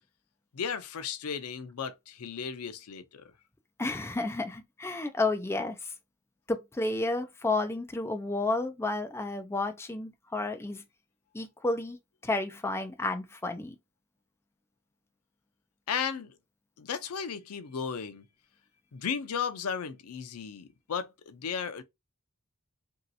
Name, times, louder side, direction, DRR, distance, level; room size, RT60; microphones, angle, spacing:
voice 1, 0.5-3.3 15.9-16.3 16.8-18.3 18.9-21.8, left 7 dB, 80° left, 0.5 m, -35 dB
voice 2, 3.8-5.9 6.5-10.8 11.3-12.0 12.2-13.8, left 2 dB, 10° left, 0.4 m, -31 dB
3.0 x 2.7 x 2.6 m
head